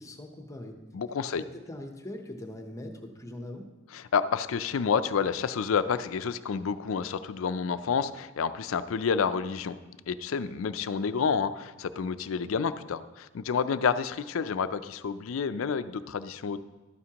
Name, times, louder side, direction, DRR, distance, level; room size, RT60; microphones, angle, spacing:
voice 1, 0.0-0.8 1.3-3.7, left 1 dB, 15° left, 4 dB, 0.8 m, -41 dB
voice 2, 0.9-1.4 3.9-9.8 10.1-16.6, left 6 dB, 70° left, 13 dB, 0.4 m, -29 dB
12.5 x 9.4 x 2.9 m, 1.2 s
head